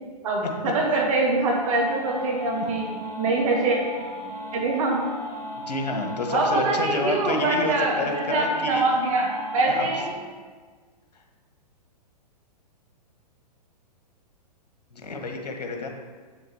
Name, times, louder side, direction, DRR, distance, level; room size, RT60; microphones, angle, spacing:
voice 1, 0.2-2.9 3.2-3.8 4.5-5.0 6.3-10.1, right 2 dB, 50° right, -1 dB, 2.2 m, -24 dB
sound 1, 1.6-10.1, left 1 dB, 75° right, 2.4 m, -37 dB
voice 2, 5.7-8.8 9.7-9.9 14.9-15.9, left 2 dB, 70° left, 3 dB, 1.5 m, -29 dB
8.4 x 6.6 x 4.6 m, 1.5 s
figure-of-eight pair, 115°, 21 cm